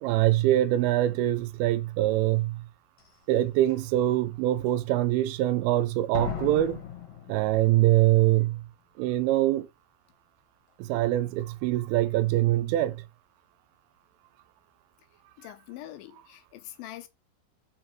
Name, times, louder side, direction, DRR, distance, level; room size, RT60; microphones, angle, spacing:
voice 1, 0.0-2.6 3.3-6.8 7.3-8.7 9.0-9.7 10.8-13.0, right 15 dB, 85° right, 2.5 m, -24 dB
Slam, 3.0-3.1 3.7-4.1 6.1-8.0 8.3-8.4, left 7 dB, 60° left, 2.1 m, -37 dB
voice 2, 15.4-17.1, left 14 dB, 80° left, 2.2 m, -44 dB
5.2 x 4.8 x 4.5 m
omnidirectional pair, 4.4 m